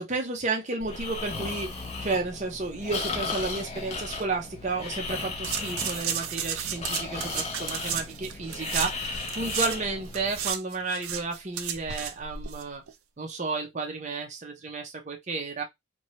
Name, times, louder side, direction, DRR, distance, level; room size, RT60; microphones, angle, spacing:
voice 1, 0.0-12.8 13.2-15.6, right 3 dB, 35° right, 0.6 m, -32 dB
Breathing, 0.8-10.5, left 3 dB, 30° left, 0.7 m, -35 dB
sound 1, 5.4-9.8 10.0-12.6 12.9-13.0, right 9 dB, 80° right, 0.4 m, -33 dB
2.8 x 2.2 x 3.0 m
head